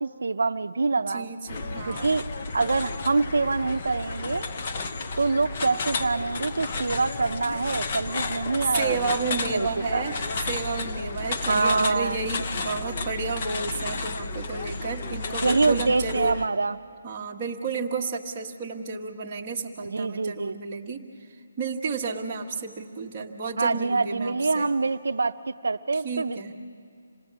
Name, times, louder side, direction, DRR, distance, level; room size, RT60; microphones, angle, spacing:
voice 1, 0.0-1.3 1.9-2.2 2.5-4.5 5.2-9.2 9.5-9.7 9.9-10.0 11.5-12.2 15.4-16.8 19.9-20.6 23.6-26.5, right 3 dB, 75° right, 9 dB, 0.6 m, -25 dB
voice 2, 1.1-2.1 8.7-16.4 17.0-24.7 25.9-26.5, right 4 dB, 15° right, -4 dB, 1.2 m, -32 dB
sound 1, 1.5-16.5, left 3 dB, 25° left, 0.7 m, -32 dB
27.0 x 19.0 x 7.5 m, 2.4 s
hypercardioid pair, 175°, 0 cm